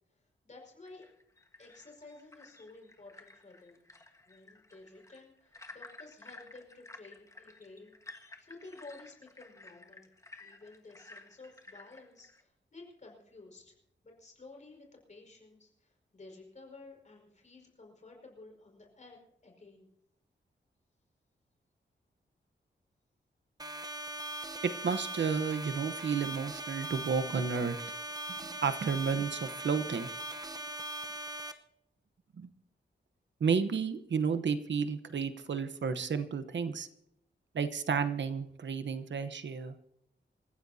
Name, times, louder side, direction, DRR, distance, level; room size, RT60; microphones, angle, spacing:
voice 1, 0.1-1.1 1.6-3.8 4.3-8.0 8.4-10.1 10.4-13.8 14.0-19.9, left 3 dB, 40° left, 1 dB, 5.3 m, -53 dB
sound 1, 0.8-12.4, left 2 dB, 15° left, 1.5 m, -54 dB
sound 2, 23.6-31.5, right 1 dB, 20° right, 0.9 m, -40 dB
voice 2, 24.6-27.8 28.3-30.1 32.4-32.5 33.4-36.9 37.5-39.7, right 6 dB, 70° right, 10 dB, 1.0 m, -32 dB
27.0 x 15.5 x 2.8 m, 0.78 s
wide cardioid pair, 170°, 19 cm